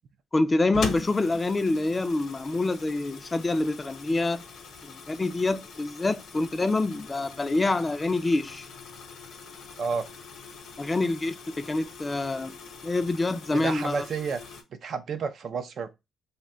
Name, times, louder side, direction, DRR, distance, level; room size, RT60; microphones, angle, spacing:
voice 1, 0.3-4.4 5.1-8.7 10.8-12.5 12.8-14.0, left 2 dB, 25° left, 0.3 m, -26 dB
sound 1, 0.7-14.6, left 5 dB, 65° left, 0.6 m, -42 dB
voice 2, 13.5-14.4 14.8-15.9, right 5 dB, 55° right, 0.4 m, -30 dB
2.6 x 2.1 x 3.6 m
cardioid pair, 90°, 0 cm